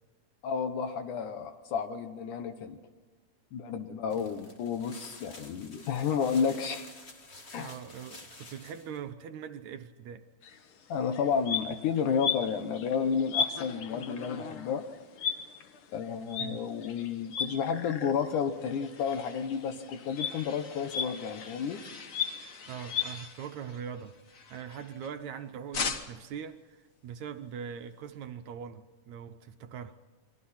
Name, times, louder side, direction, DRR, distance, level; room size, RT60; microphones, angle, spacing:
voice 1, 0.4-2.8 3.5-6.9 7.5-7.7 10.9-14.9 15.9-21.8, left 6 dB, 75° left, 2.5 m, -31 dB
sound 1, 4.1-9.0, left 2 dB, 30° left, 1.3 m, -50 dB
voice 2, 7.6-10.2 16.4-16.6 22.7-24.2 24.5-30.0, right 8 dB, 70° right, 2.0 m, -42 dB
sound 2, 10.4-10.6 11.1-18.4 18.7-23.1, left 7 dB, 55° left, 1.6 m, -36 dB
sound 3, 18.3-25.3 25.7-26.4, left 4 dB, 90° left, 0.7 m, -42 dB
29.0 x 22.5 x 4.3 m
omnidirectional pair, 3.7 m